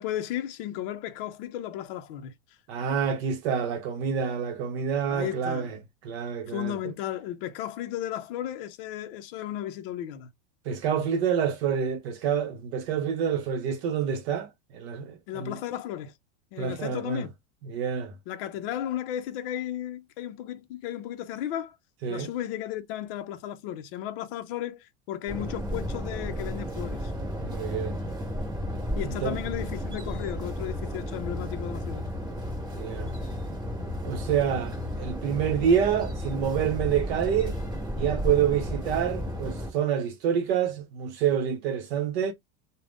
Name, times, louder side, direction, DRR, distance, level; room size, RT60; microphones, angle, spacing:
voice 1, 0.0-2.3 5.1-5.7 6.5-10.3 15.3-16.1 16.5-17.3 18.3-21.8 22.1-27.1 29.0-32.1, left 11 dB, 55° left, 0.5 m, -34 dB
voice 2, 2.7-5.8 6.0-6.8 10.7-15.6 16.6-17.3 17.6-18.1 22.0-22.3 27.4-28.0 29.0-29.4 32.7-33.1 34.0-37.6 38.0-42.3, right 8 dB, 65° right, 0.7 m, -27 dB
sound 1, 25.3-39.7, equal, 15° right, 0.8 m, -33 dB
2.4 x 2.0 x 3.3 m
supercardioid pair, 175°, 35 cm